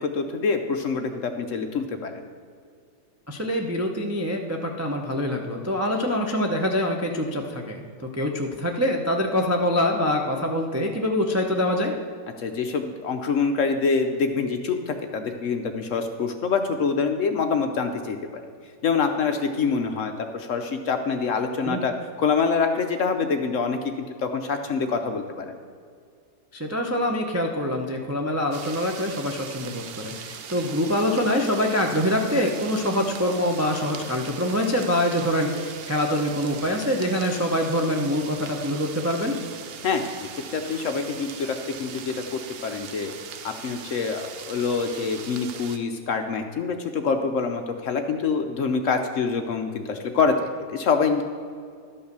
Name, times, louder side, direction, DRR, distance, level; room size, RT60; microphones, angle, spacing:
voice 1, 0.0-2.2 12.4-18.2 18.8-21.9 22.2-25.5 39.8-43.1 43.4-51.2, left 5 dB, 60° left, 5 dB, 0.9 m, -26 dB
voice 2, 3.3-7.8 8.1-11.9 21.6-21.8 26.5-39.4, left 1 dB, 20° right, 1 dB, 0.4 m, -25 dB
sound 1, 28.5-45.8, right 7 dB, 75° right, 0.5 m, -40 dB
12.0 x 5.5 x 6.7 m, 2.2 s
omnidirectional pair, 1.8 m